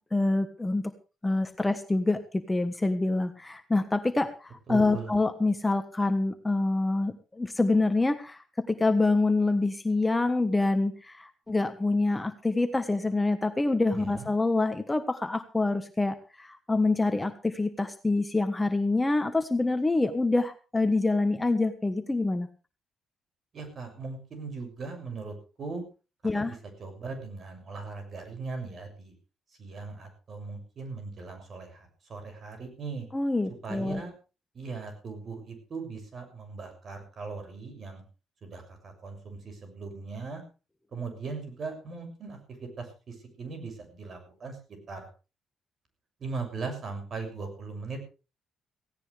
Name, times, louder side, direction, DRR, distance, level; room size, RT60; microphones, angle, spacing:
voice 1, 0.1-0.9 1.2-22.5 26.2-26.5 33.1-34.0, left 2 dB, 15° left, 8 dB, 1.3 m, -26 dB
voice 2, 4.7-5.1 13.9-14.3 23.5-25.8 26.3-29.1 29.6-33.1 33.6-34.1 34.5-38.0 38.4-40.4 40.9-44.6 44.9-45.1 46.2-48.1, right 4 dB, 50° right, 6 dB, 6.7 m, -39 dB
17.0 x 17.0 x 3.4 m, 0.33 s
cardioid pair, 105°, 0 cm